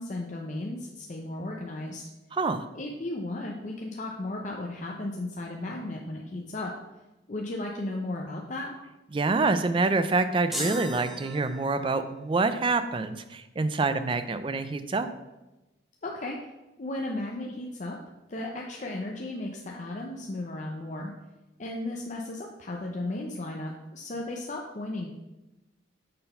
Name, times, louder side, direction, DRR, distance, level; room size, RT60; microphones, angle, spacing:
voice 1, 0.0-2.0 2.7-6.7 7.3-8.7 16.0-16.5 16.8-18.0 18.3-21.1 21.6-25.1, left 2 dB, 40° left, 0 dB, 0.5 m, -35 dB
voice 2, 2.3-2.7 9.1-15.1, right 3 dB, 25° right, 11 dB, 0.3 m, -26 dB
sound 1, 10.5-12.1, equal, ahead, 1.0 m, -36 dB
6.7 x 3.8 x 5.5 m, 1.0 s
head